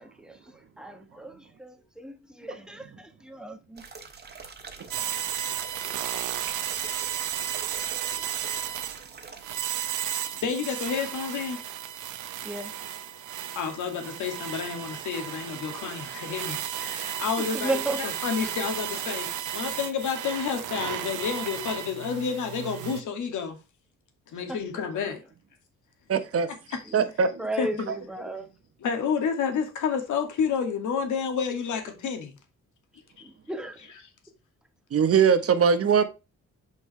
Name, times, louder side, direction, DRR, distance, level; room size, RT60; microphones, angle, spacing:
voice 1, 0.0-3.8 12.4-12.7 17.4-18.0 24.5-24.6 26.9-27.0 27.4-28.5 33.2-33.8, right 1 dB, 5° right, 1.4 m, -35 dB
sound 1, 3.8-10.0 10.3-10.4, right 4 dB, 35° right, 1.6 m, -45 dB
sound 2, 4.9-23.0, right 10 dB, 90° right, 0.9 m, -34 dB
voice 2, 10.3-11.6 13.6-23.6 24.3-25.2 26.7-26.8 27.6-27.9 28.8-32.4, left 6 dB, 80° left, 2.3 m, -30 dB
voice 3, 26.1-26.5 26.9-27.5 34.9-36.0, right 6 dB, 50° right, 1.2 m, -21 dB
8.1 x 5.6 x 3.3 m
cardioid pair, 115°, 30 cm